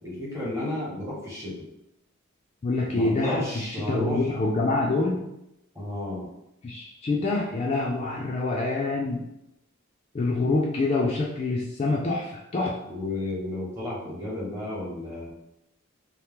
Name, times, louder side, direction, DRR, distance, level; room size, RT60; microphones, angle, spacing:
voice 1, 0.0-1.6 2.9-4.3 5.7-6.3 12.9-15.3, left 1 dB, 15° right, -6 dB, 0.9 m, -32 dB
voice 2, 2.6-5.3 6.6-9.3 10.1-12.7, left 2 dB, 30° left, -3 dB, 0.3 m, -26 dB
2.8 x 2.0 x 3.4 m, 0.85 s
head